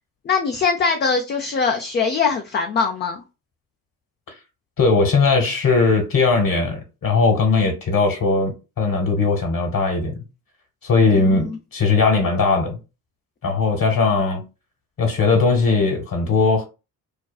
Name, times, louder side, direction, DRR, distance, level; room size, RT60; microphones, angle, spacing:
voice 1, 0.2-3.2 11.0-11.6, left 5 dB, 25° left, 0.3 m, -22 dB
voice 2, 4.8-10.2 10.8-12.8 13.4-14.4 15.0-16.6, left 4 dB, 45° left, 1.1 m, -19 dB
2.5 x 2.2 x 2.2 m
hypercardioid pair, 50°, 47 cm